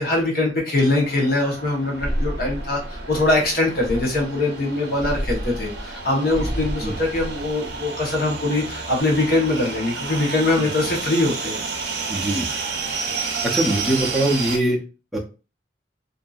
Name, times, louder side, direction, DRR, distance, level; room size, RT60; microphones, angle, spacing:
voice 1, 0.0-11.6, left 2 dB, 55° left, -1 dB, 0.9 m, -22 dB
sound 1, 0.8-14.6, right 4 dB, 70° right, 0.6 m, -31 dB
sound 2, 2.0-4.4 5.0-8.0 8.5-9.0, equal, 75° left, 1.1 m, -30 dB
voice 2, 12.1-12.5 13.4-14.8 15.1-15.2, right 1 dB, ahead, -3 dB, 0.5 m, -22 dB
2.6 x 2.6 x 2.3 m, 0.34 s
head